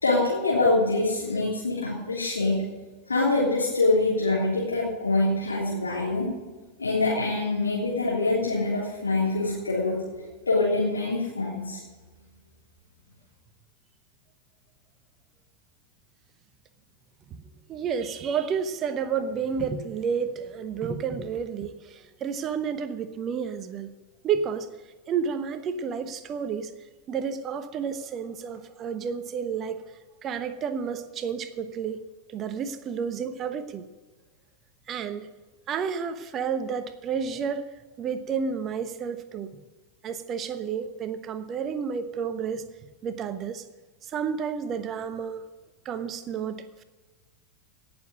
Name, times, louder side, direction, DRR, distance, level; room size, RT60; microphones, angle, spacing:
voice 1, 0.0-2.6 3.1-6.3 6.8-11.8, left 2 dB, 75° left, -6 dB, 3.4 m, -25 dB
voice 2, 17.7-23.9 24.2-24.7 25.1-26.7 27.1-29.8 30.2-32.0 32.3-33.8 34.9-35.3 35.7-37.6 38.0-39.5 40.0-42.6 43.0-43.6 44.1-45.4 45.8-46.8, right 6 dB, 30° right, 11 dB, 1.0 m, -30 dB
17.5 x 7.1 x 6.5 m, 1.3 s
figure-of-eight pair, 90°, 0 cm